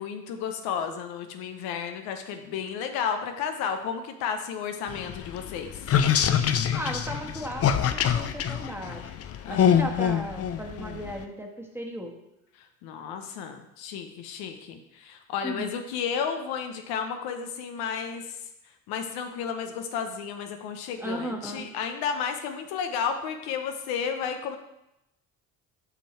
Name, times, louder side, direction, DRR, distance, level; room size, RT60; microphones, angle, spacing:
voice 1, 0.0-5.9 9.4-9.9 12.6-18.4 18.9-24.6, left 7 dB, 75° left, 6 dB, 0.9 m, -32 dB
sound 1, 4.9-11.2, left 8 dB, 40° left, 0.6 m, -25 dB
voice 2, 6.7-9.1 9.5-12.1 15.4-15.7 21.0-21.7, right 1 dB, 5° right, 1 dB, 1.4 m, -36 dB
6.0 x 5.5 x 4.3 m, 0.86 s
hypercardioid pair, 65°, 38 cm